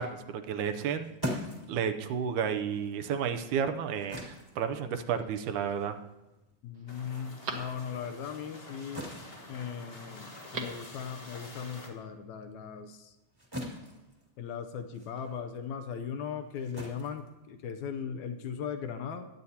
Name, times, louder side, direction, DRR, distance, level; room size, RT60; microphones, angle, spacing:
voice 1, 0.0-1.4 1.7-6.0, right 7 dB, 80° right, 7 dB, 2.1 m, -32 dB
sound 1, 0.7-7.5 7.8-18.0, equal, 10° right, 1.1 m, -44 dB
Telephone, 5.1-5.7 6.3-6.4 6.7-8.3 10.3-10.9 11.2-11.3, right 4 dB, 55° right, 1.3 m, -42 dB
voice 2, 6.6-9.1 9.5-13.2 14.4-19.3, left 7 dB, 75° left, 8 dB, 1.8 m, -38 dB
sound 2, 6.9-11.9, left 2 dB, 60° left, 0.6 m, -48 dB
21.5 x 9.4 x 2.8 m, 1.0 s
omnidirectional pair, 3.7 m